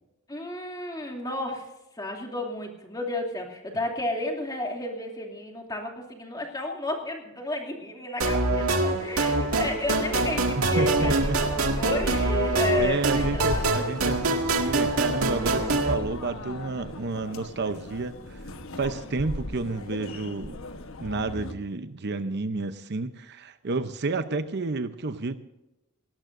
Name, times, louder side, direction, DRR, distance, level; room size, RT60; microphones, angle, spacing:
voice 1, 0.3-1.7 2.0-14.0, left 1 dB, 15° left, 1 dB, 2.7 m, -32 dB
sound 1, 8.2-15.9, right 2 dB, 75° right, 2.0 m, -25 dB
sound 2, 10.6-21.5, left 1 dB, 65° left, 1.2 m, -37 dB
voice 2, 10.6-11.4 12.8-18.4 18.8-20.6 21.0-25.4, right 3 dB, 50° right, 10 dB, 0.7 m, -30 dB
18.5 x 18.5 x 2.6 m, 0.95 s
head